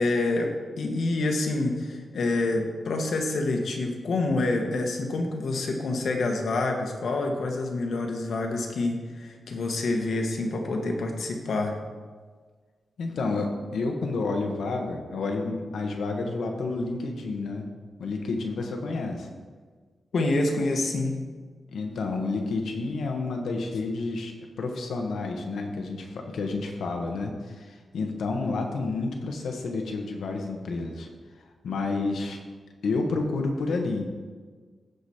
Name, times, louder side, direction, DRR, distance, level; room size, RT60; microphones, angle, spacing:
voice 1, 0.0-11.8 20.1-21.2, left 2 dB, 65° left, 2 dB, 1.3 m, -27 dB
voice 2, 13.0-17.7 18.0-19.3 21.7-31.1 31.6-32.4 32.8-34.0, left 3 dB, 90° left, 3 dB, 1.3 m, -30 dB
14.5 x 5.1 x 4.3 m, 1.5 s
wide cardioid pair, 150°, 0 cm